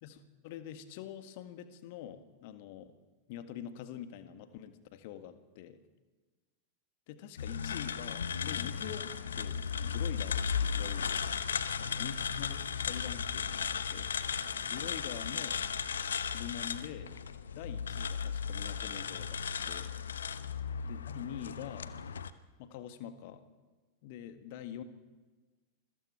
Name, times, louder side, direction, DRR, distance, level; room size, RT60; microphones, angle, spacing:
voice 1, 0.0-3.0 3.3-5.8 7.1-11.3 11.8-14.1 14.7-15.6 16.3-17.2 17.5-20.0 20.8-22.0 22.6-23.4 24.0-24.8, left 10 dB, 50° left, 9 dB, 1.7 m, -45 dB
sound 1, 7.4-22.3, left 7 dB, 70° left, 0.9 m, -35 dB
sound 2, 8.3-17.1, right 1 dB, 90° left, 6.3 m, -54 dB
28.0 x 22.0 x 4.6 m, 1.3 s
figure-of-eight pair, 90°, 0 cm